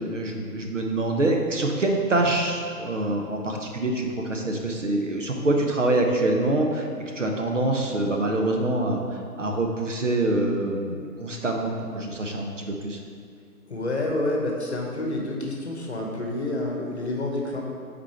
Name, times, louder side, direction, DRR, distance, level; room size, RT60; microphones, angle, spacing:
voice 1, 0.0-6.9 7.1-13.0, right 2 dB, 50° right, 1 dB, 0.8 m, -25 dB
voice 2, 13.7-17.6, left 2 dB, 45° left, 0 dB, 1.0 m, -28 dB
6.0 x 4.2 x 4.4 m, 2.2 s
figure-of-eight pair, 155°, 47 cm